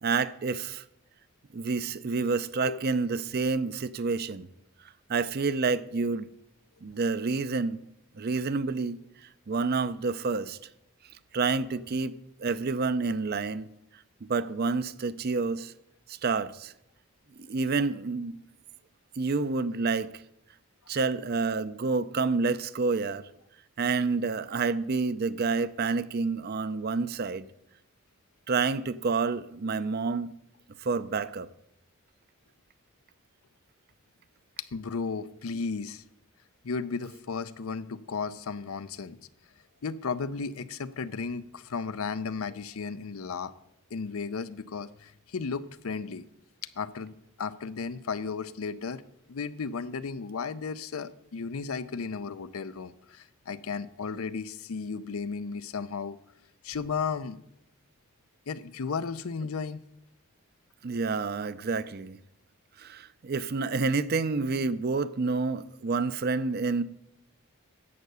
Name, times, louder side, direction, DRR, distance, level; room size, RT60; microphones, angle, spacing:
voice 1, 0.0-0.8 1.5-4.5 5.1-6.3 6.8-7.8 8.2-9.0 9.5-10.6 11.3-12.1 12.4-13.7 14.2-15.7 16.1-16.7 17.4-18.4 19.2-20.1 20.9-23.3 23.8-27.5 28.5-30.3 30.8-31.5 60.8-62.2 62.8-66.8, right 4 dB, 45° right, 0.5 m, -28 dB
voice 2, 34.6-36.0 36.6-39.2 39.8-43.5 43.9-46.2 46.8-49.0 49.3-56.2 56.6-57.4 58.5-59.8, left 5 dB, 75° left, 0.6 m, -34 dB
11.0 x 7.7 x 6.8 m
head